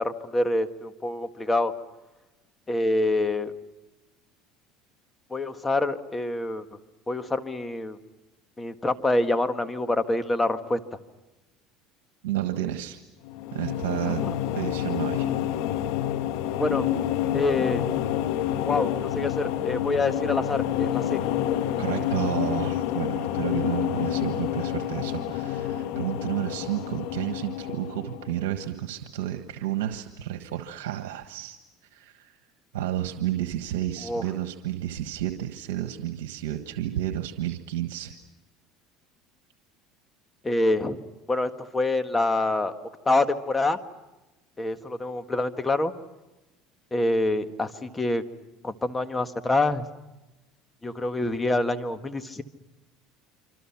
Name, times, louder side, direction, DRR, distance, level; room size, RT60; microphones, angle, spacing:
voice 1, 0.0-1.7 2.7-3.5 5.3-6.6 7.1-8.0 8.6-10.8 14.1-14.3 16.6-16.9 17.3-17.8 18.6-21.2 34.0-34.2 40.4-41.0 41.3-42.7 43.0-43.8 44.6-45.9 46.9-48.2 48.6-49.8 50.8-52.4, left 2 dB, 15° left, 8 dB, 1.7 m, -26 dB
voice 2, 12.2-13.0 13.5-14.2 14.5-15.3 21.8-31.6 31.9-32.4 32.7-38.1, right 12 dB, 90° right, 6 dB, 1.4 m, -31 dB
sound 1, 13.2-28.6, left 11 dB, 75° left, 1.4 m, -28 dB
26.5 x 26.0 x 6.0 m, 1.0 s
supercardioid pair, 100°, 0 cm